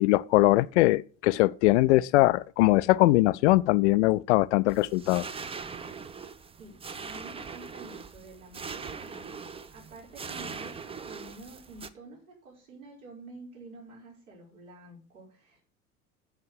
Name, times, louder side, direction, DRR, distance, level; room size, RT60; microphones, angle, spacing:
voice 1, 0.0-5.3, left 18 dB, 50° left, 0.5 m, -22 dB
sound 1, 4.7-11.9, right 5 dB, 15° right, 0.7 m, -41 dB
voice 2, 6.6-9.4 9.7-15.6, right 2 dB, 75° right, 5.4 m, -49 dB
8.0 x 7.5 x 7.5 m
figure-of-eight pair, 70°, 43 cm